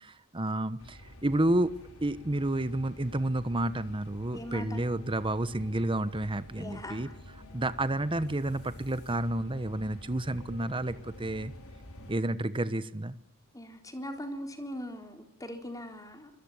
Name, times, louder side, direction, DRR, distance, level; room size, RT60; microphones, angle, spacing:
voice 1, 0.0-7.1 7.5-11.5 12.1-13.1, right 1 dB, 25° right, 13 dB, 1.1 m, -30 dB
sound 1, 0.8-12.1, left 1 dB, 70° left, 5.5 m, -49 dB
voice 2, 4.3-4.8 6.6-7.1 13.5-16.3, equal, 15° left, 5 dB, 4.0 m, -40 dB
25.5 x 21.5 x 9.7 m, 0.75 s
head